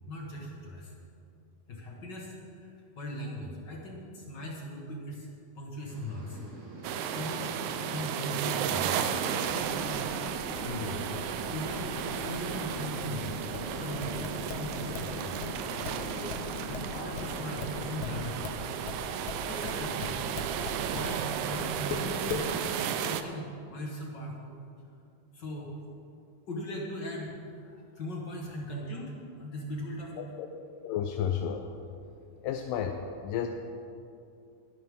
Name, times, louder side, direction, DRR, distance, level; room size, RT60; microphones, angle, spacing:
voice 1, 0.1-0.9 1.7-5.3 5.5-6.4 7.0-10.0 10.6-11.1 11.5-13.4 13.8-14.3 14.5-15.4 16.0-18.5 19.4-20.2 20.9-24.6 25.3-25.7 26.5-30.2, equal, 50° left, -2 dB, 1.4 m, -39 dB
sound 1, 5.9-22.7, right 1 dB, 60° right, 3.0 m, -42 dB
sound 2, 6.8-23.2, right 8 dB, 75° right, 1.9 m, -34 dB
sound 3, 9.6-15.1 15.4-21.1 21.5-22.5, left 5 dB, 70° left, 1.3 m, -40 dB
voice 2, 30.8-31.7 32.4-33.5, left 8 dB, 85° left, 4 dB, 2.3 m, -32 dB
21.5 x 9.7 x 3.6 m, 2.5 s
omnidirectional pair, 3.8 m